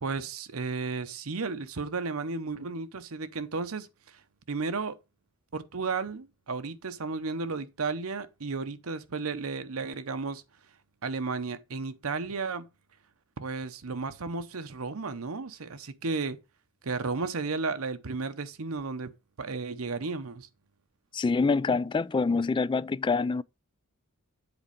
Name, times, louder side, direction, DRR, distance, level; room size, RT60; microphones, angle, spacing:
voice 1, 0.0-4.2 4.5-5.0 5.5-10.4 11.0-12.7 13.4-16.4 16.8-19.1 19.4-20.5, right 4 dB, 85° right, 0.8 m, -33 dB
voice 2, 21.1-23.4, left 4 dB, 20° left, 0.3 m, -26 dB
8.0 x 4.2 x 5.1 m
head